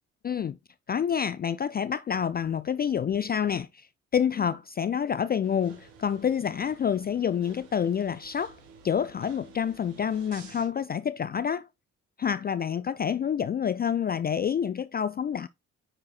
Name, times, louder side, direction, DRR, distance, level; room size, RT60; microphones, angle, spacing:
voice 1, 0.2-0.6 0.9-3.9 4.1-8.6 8.8-11.7 12.2-15.5, left 8 dB, 25° left, 0.4 m, -28 dB
sound 1, 5.4-10.7, right 5 dB, 80° right, 1.4 m, -52 dB
9.3 x 4.4 x 2.4 m
hypercardioid pair, 45°, 37 cm